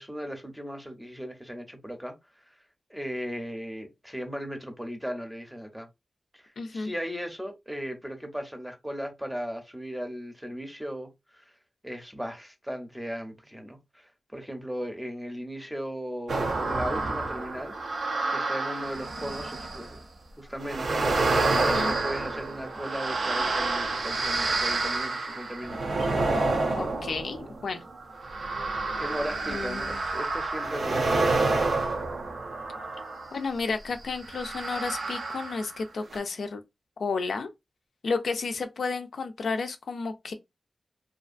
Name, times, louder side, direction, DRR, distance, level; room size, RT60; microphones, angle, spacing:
voice 1, 0.0-2.2 2.5-2.6 2.9-5.9 6.3-11.5 11.8-17.7 18.3-20.0 20.4-26.1 29.0-31.2, equal, 5° right, 0.6 m, -37 dB
voice 2, 6.6-6.9 21.5-21.9 26.8-27.8 29.5-30.0 33.3-36.6 37.0-37.5 38.0-40.3, left 4 dB, 90° left, 0.4 m, -32 dB
sound 1, 16.3-20.0 20.6-33.4 34.2-35.8 36.1-36.2, right 3 dB, 80° right, 0.5 m, -29 dB
2.5 x 2.4 x 2.4 m
wide cardioid pair, 80°, 0 cm